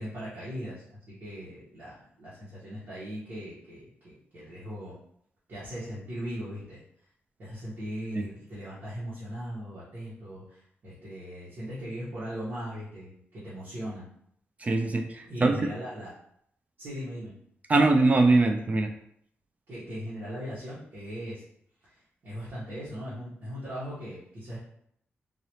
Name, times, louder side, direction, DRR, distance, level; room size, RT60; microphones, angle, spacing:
voice 1, 0.0-5.0 5.5-6.8 7.4-14.1 15.2-16.1 16.8-17.3 19.7-21.4 21.8-24.6, equal, 65° right, -10 dB, 1.5 m, -39 dB
voice 2, 14.6-15.7 17.7-18.9, right 2 dB, 35° right, 5 dB, 0.4 m, -22 dB
3.9 x 2.7 x 3.1 m, 0.69 s
wide cardioid pair, 115°, 4 cm